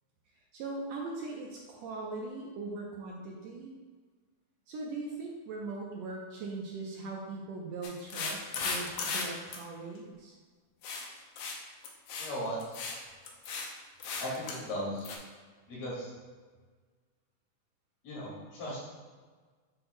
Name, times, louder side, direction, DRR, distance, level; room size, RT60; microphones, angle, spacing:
voice 1, 0.5-3.7 4.7-10.4, right 3 dB, 75° right, -2 dB, 1.7 m, -40 dB
sound 1, 7.8-9.2 9.5-9.6 10.8-11.1 11.4-11.6 11.8-12.3 12.6-13.0 13.2-13.7 14.0-14.6 15.0-15.2, left 4 dB, 85° left, 1.3 m, -36 dB
voice 2, 12.2-12.6 14.2-15.1 15.7-16.1 18.0-18.8, equal, 55° left, -6 dB, 3.2 m, -37 dB
7.9 x 6.0 x 2.2 m, 1.4 s
omnidirectional pair, 3.7 m